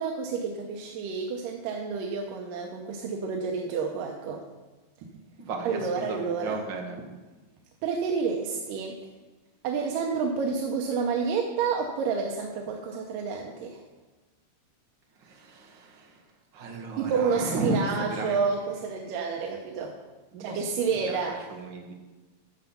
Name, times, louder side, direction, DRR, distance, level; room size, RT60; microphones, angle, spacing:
voice 1, 0.0-4.4 5.6-6.6 7.8-9.0 9.6-13.8 17.0-20.0 20.4-21.5, right 5 dB, 90° right, 1 dB, 2.5 m, -29 dB
voice 2, 5.4-7.0 15.2-16.2 16.5-18.4 20.3-21.9, right 3 dB, 55° right, 2 dB, 1.3 m, -34 dB
11.5 x 6.9 x 5.6 m, 1.2 s
omnidirectional pair, 3.8 m